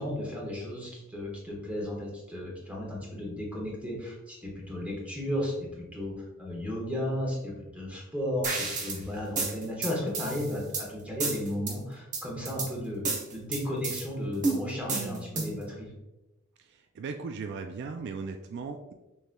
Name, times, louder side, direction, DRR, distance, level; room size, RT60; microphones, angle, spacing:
voice 1, 0.0-15.9, left 1 dB, 5° right, -3 dB, 1.2 m, -34 dB
sound 1, 8.4-9.0 9.4-10.8 11.2-11.7 12.1-12.7 13.0-14.0 14.4-15.6, right 3 dB, 40° right, 0.8 m, -31 dB
voice 2, 16.6-18.9, right 4 dB, 55° right, 6 dB, 0.3 m, -38 dB
6.4 x 3.1 x 2.2 m, 0.99 s
head